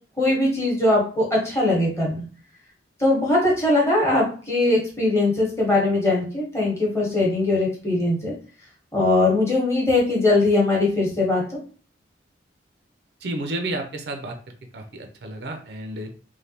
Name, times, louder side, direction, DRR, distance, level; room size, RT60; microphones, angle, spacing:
voice 1, 0.2-2.2 3.0-8.3 8.9-11.4, left 2 dB, 15° left, -3 dB, 0.9 m, -21 dB
voice 2, 13.2-14.4 14.7-16.1, right 1 dB, 60° right, 4 dB, 0.5 m, -31 dB
3.3 x 2.2 x 2.7 m, 0.40 s
head